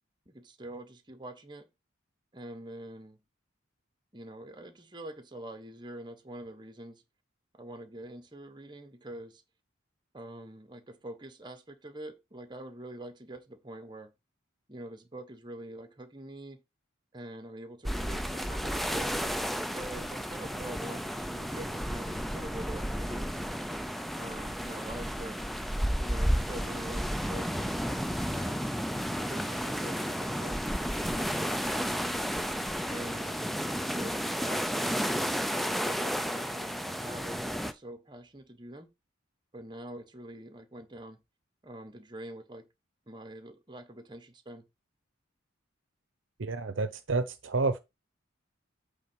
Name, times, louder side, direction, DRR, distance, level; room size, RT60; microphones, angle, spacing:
voice 1, 0.3-1.7 2.3-3.2 4.1-7.0 7.5-9.4 10.1-14.1 14.7-16.6 17.1-19.2 19.6-23.4 24.2-25.4 26.0-28.6 29.2-32.2 32.9-35.0 35.5-38.9 39.5-41.2 41.6-42.7 43.1-44.7, right 1 dB, 20° right, 1.2 m, -45 dB
sound 1, 17.8-37.7, equal, ahead, 0.5 m, -32 dB
voice 2, 46.4-47.8, right 3 dB, 65° right, 0.8 m, -29 dB
8.5 x 3.8 x 6.2 m
head